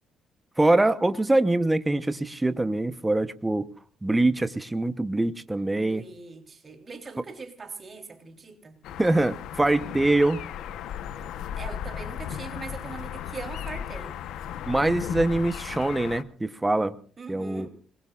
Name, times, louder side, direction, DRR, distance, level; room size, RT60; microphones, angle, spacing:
voice 1, 0.6-3.7 4.0-6.0 9.0-10.4 14.7-17.0 17.3-17.7, right 2 dB, 10° right, 11 dB, 0.9 m, -24 dB
voice 2, 5.9-8.8 11.5-14.2 17.2-17.7, right 4 dB, 30° right, 5 dB, 3.5 m, -41 dB
sound 1, 8.8-16.2, left 9 dB, 75° left, 1.0 m, -36 dB
27.5 x 21.0 x 2.5 m, 0.40 s
cardioid pair, 110°, 0 cm